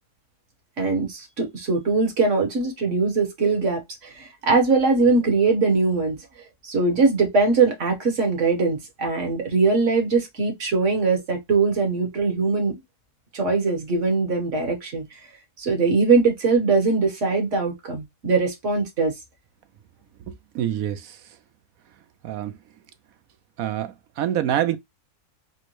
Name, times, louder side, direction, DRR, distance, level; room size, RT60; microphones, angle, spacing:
voice 1, 0.8-6.2 6.6-12.7 13.3-15.0 15.6-19.1, right 4 dB, 50° right, 1.6 m, -21 dB
voice 2, 20.3-21.2 22.2-22.5 23.6-24.8, right 11 dB, 70° right, 0.9 m, -26 dB
4.2 x 2.1 x 3.0 m
omnidirectional pair, 1.7 m